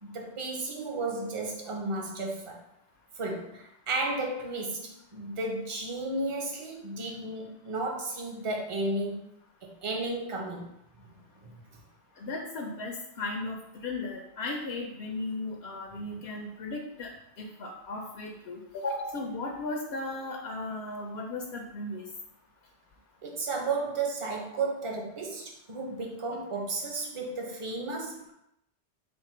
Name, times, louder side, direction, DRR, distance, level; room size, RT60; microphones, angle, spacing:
voice 1, 0.0-2.6 3.2-9.2 9.6-10.7 11.4-11.6 23.2-28.3, right 2 dB, 35° right, 0 dB, 0.7 m, -33 dB
voice 2, 12.2-22.0, left 2 dB, 80° left, 1 dB, 0.8 m, -36 dB
4.5 x 2.2 x 4.2 m, 0.80 s
omnidirectional pair, 1.1 m